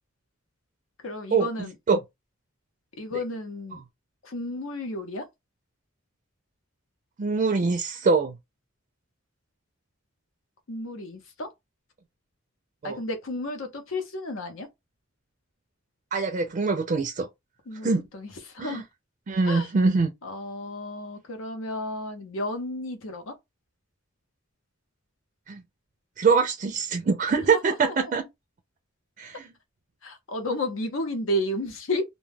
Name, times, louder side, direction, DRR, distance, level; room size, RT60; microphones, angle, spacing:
voice 1, 1.0-1.7 3.0-3.8 4.2-5.3 10.7-11.5 12.8-14.7 17.7-18.8 19.4-19.7 20.2-23.3 27.5-28.1 30.0-32.0, left 1 dB, 90° left, 0.7 m, -32 dB
voice 2, 7.2-8.4 12.8-13.0 16.1-17.3 17.8-18.1 18.6-18.8 19.3-20.1 25.5-25.6 26.2-28.2 29.2-29.4, right 4 dB, 40° right, 0.4 m, -23 dB
2.2 x 2.1 x 3.3 m
head